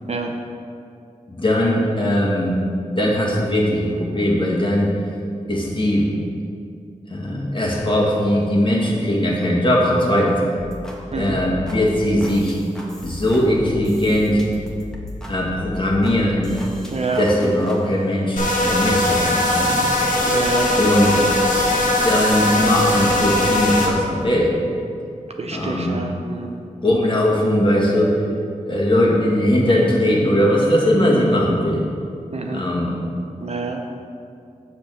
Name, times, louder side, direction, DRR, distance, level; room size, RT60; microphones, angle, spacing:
voice 1, 1.3-2.5 3.0-5.1 5.5-6.1 7.1-10.4 11.2-12.6 13.0-14.5 15.3-16.6 17.2-19.7 20.8-21.3 21.6-21.7 22.0-24.6 25.5-26.0 26.8-28.2 28.6-31.9 32.5-33.0, equal, 40° left, -3 dB, 1.8 m, -19 dB
sound 1, 10.6-17.8, left 1 dB, 5° left, 1.5 m, -36 dB
voice 2, 16.9-17.2 20.3-20.8 25.4-26.6 32.3-32.6 33.4-33.8, right 4 dB, 55° right, 2 dB, 0.6 m, -27 dB
sound 2, 18.4-23.9, left 1 dB, 85° left, 1.1 m, -19 dB
6.9 x 5.1 x 6.4 m, 2.5 s
cardioid pair, 55°, 13 cm